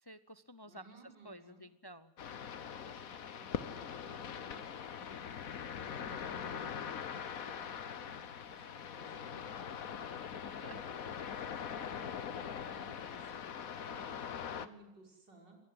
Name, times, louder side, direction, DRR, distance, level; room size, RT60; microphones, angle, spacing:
voice 1, 0.0-0.8 1.2-2.1 10.4-10.8, equal, 30° left, 14 dB, 0.4 m, -52 dB
voice 2, 0.6-1.6 2.8-5.2 5.8-9.6 10.5-10.8 11.1-15.6, right 2 dB, 85° right, 2 dB, 6.5 m, -59 dB
sound 1, 2.2-14.7, left 7 dB, 55° left, 1.5 m, -42 dB
24.5 x 19.0 x 7.9 m, 0.93 s
omnidirectional pair, 1.9 m